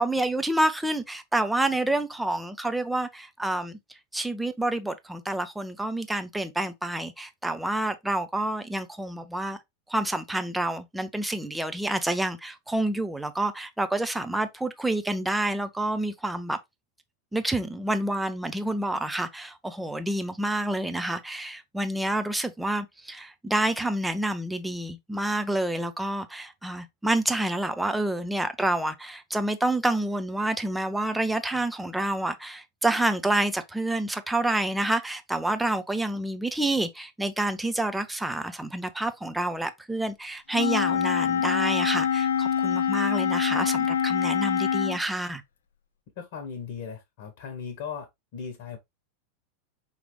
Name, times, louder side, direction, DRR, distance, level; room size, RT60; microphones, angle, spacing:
voice 1, 0.0-3.8 4.1-9.6 9.9-16.6 17.3-45.4, right 1 dB, 5° right, 0.7 m, -28 dB
Wind instrument woodwind instrument, 40.5-45.0, left 8 dB, 75° left, 0.5 m, -25 dB
voice 2, 46.2-48.8, left 6 dB, 60° left, 1.2 m, -38 dB
5.0 x 3.2 x 3.1 m
hypercardioid pair, 90°, 0 cm